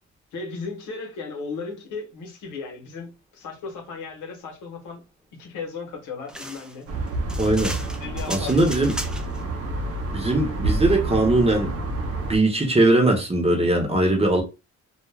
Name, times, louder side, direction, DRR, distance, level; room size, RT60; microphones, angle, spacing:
voice 1, 0.3-5.0 5.4-6.9 8.0-8.9, left 4 dB, 80° left, 0.9 m, -36 dB
sound 1, 6.3-9.4, equal, 5° right, 0.4 m, -36 dB
sound 2, 6.9-12.4, right 2 dB, 50° right, 0.7 m, -28 dB
voice 2, 7.4-7.8 8.3-8.9 10.1-11.7 12.3-14.4, right 2 dB, 20° right, 0.8 m, -20 dB
2.4 x 2.0 x 3.1 m
cardioid pair, 90°, 30 cm